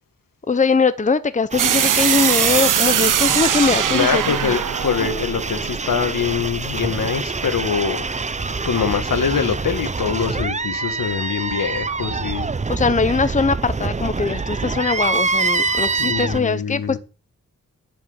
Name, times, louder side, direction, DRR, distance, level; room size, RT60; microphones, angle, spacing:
voice 1, 0.5-4.6 12.7-17.0, left 4 dB, 25° left, 0.7 m, -21 dB
sound 1, 1.5-16.4, right 4 dB, 20° right, 0.6 m, -25 dB
sound 2, 1.6-6.4, right 10 dB, 75° right, 0.6 m, -21 dB
voice 2, 3.9-8.1 8.7-12.5 16.0-17.0, left 6 dB, 85° left, 1.9 m, -23 dB
10.5 x 7.6 x 8.2 m
wide cardioid pair, 130°, 32 cm